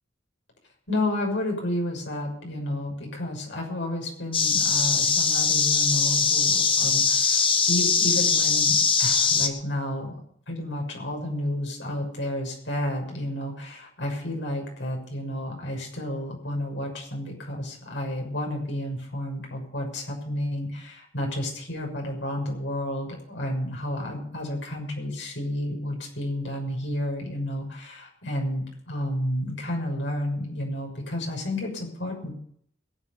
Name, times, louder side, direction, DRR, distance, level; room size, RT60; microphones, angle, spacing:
voice 1, 0.9-10.1 10.5-32.3, left 1 dB, 70° left, 1 dB, 6.5 m, -31 dB
sound 1, 4.3-9.5, left 5 dB, 30° left, 1.6 m, -21 dB
22.0 x 8.8 x 5.5 m, 0.66 s
head